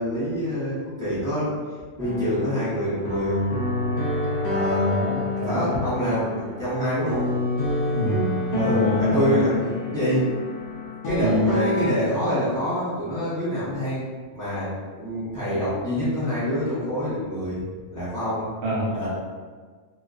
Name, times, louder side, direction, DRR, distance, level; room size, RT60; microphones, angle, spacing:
voice 1, 0.0-1.5 2.0-3.4 4.5-5.0 5.4-7.3 8.6-10.3 11.0-14.1 14.3-17.6 17.9-18.5 18.9-19.1, equal, 15° right, -13 dB, 0.8 m, -26 dB
sound 1, 2.0-11.9, left 2 dB, 60° left, 0.6 m, -27 dB
voice 2, 4.8-5.8 7.9-9.5 11.2-11.5 18.6-18.9, equal, 55° right, -5 dB, 0.7 m, -26 dB
2.3 x 2.3 x 2.4 m, 1.5 s
omnidirectional pair, 1.3 m